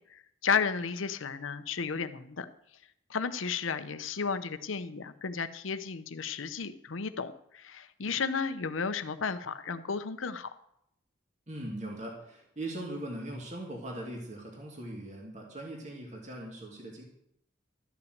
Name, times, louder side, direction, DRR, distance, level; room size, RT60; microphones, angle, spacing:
voice 1, 0.1-2.5 3.1-10.5, left 5 dB, 85° left, 11 dB, 0.7 m, -33 dB
voice 2, 11.5-17.0, right 1 dB, 35° right, -1 dB, 2.3 m, -40 dB
13.0 x 5.9 x 7.9 m, 0.76 s
head